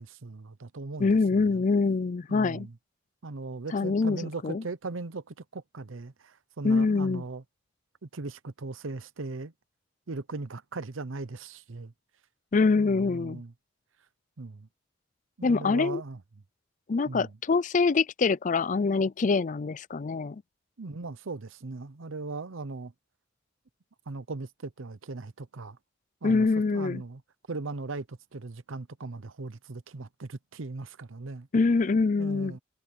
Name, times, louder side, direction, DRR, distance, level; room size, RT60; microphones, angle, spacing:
voice 1, 0.0-1.6 2.3-2.8 3.2-7.4 8.0-9.5 10.1-11.9 12.8-13.5 14.4-14.7 15.4-16.2 17.1-17.4 20.8-22.9 24.1-25.8 26.2-27.2 27.5-31.5 32.2-32.6, right 3 dB, 85° right, 0.8 m, -38 dB
voice 2, 1.0-2.7 3.7-4.6 6.6-7.2 12.5-13.4 15.4-16.0 16.9-20.4 26.2-27.0 31.5-32.6, left 4 dB, 40° left, 0.4 m, -25 dB
head